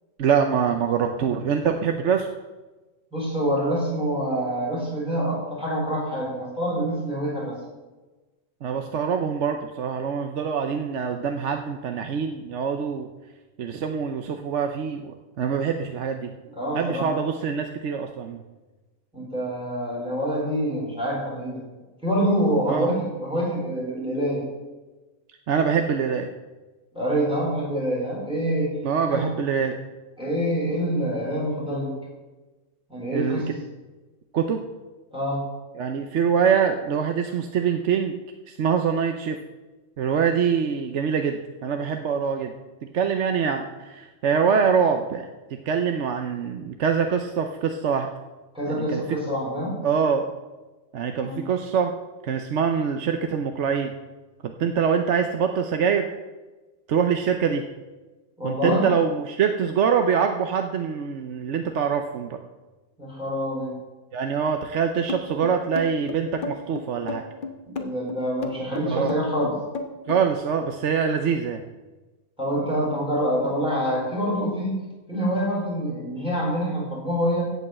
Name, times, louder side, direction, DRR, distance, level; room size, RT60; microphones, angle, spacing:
voice 1, 0.2-2.3 8.6-13.1 13.6-16.3 16.7-18.4 22.7-22.9 25.5-26.3 28.8-29.8 33.1-33.4 34.3-34.6 35.7-38.1 38.5-39.4 40.0-42.5 42.9-45.3 45.7-48.1 48.7-49.0 49.8-50.3 50.9-51.9 52.2-53.9 54.4-56.1 56.9-57.6 58.4-62.4 64.1-67.2 68.9-69.2 70.1-71.6, right 6 dB, 65° right, 5 dB, 1.0 m, -24 dB
voice 2, 3.1-7.6 16.5-17.1 19.1-21.6 22.0-24.5 26.9-28.7 29.1-29.3 30.2-31.9 32.9-33.4 35.1-35.4 48.5-49.8 51.2-51.4 58.4-58.9 63.0-63.7 67.7-69.5 72.4-74.8 75.1-77.5, equal, 5° right, -5 dB, 4.7 m, -26 dB
sound 1, 65.1-70.2, left 3 dB, 40° left, 1.2 m, -32 dB
16.0 x 5.5 x 7.5 m, 1.2 s
omnidirectional pair, 1.4 m